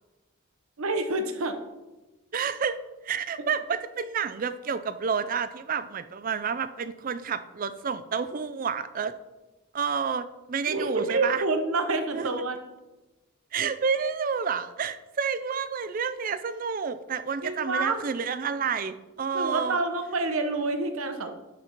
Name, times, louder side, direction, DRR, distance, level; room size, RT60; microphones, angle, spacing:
voice 1, 0.8-1.6 10.7-12.6 17.4-18.0 19.3-21.3, right 3 dB, 80° right, 6 dB, 0.9 m, -27 dB
voice 2, 2.3-2.8 3.0-9.1 9.7-11.4 12.1-12.2 13.5-19.8, right 6 dB, 40° right, 13 dB, 0.4 m, -29 dB
11.0 x 4.1 x 4.4 m, 1.1 s
head